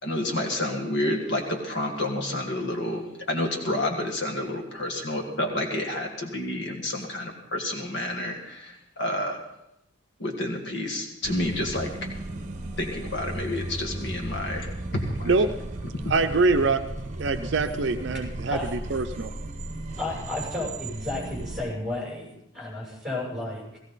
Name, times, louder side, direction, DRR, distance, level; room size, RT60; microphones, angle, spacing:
voice 1, 0.0-9.4 10.2-11.9 12.8-15.3 16.0-16.1, left 1 dB, 55° left, 2 dB, 1.8 m, -29 dB
sound 1, 11.2-21.6, right 1 dB, 35° right, 1.0 m, -36 dB
voice 2, 16.1-16.8 17.2-19.3, right 3 dB, 60° right, 8 dB, 0.6 m, -24 dB
voice 3, 20.0-23.8, left 2 dB, ahead, -4 dB, 7.0 m, -32 dB
17.0 x 16.0 x 4.0 m, 0.84 s
head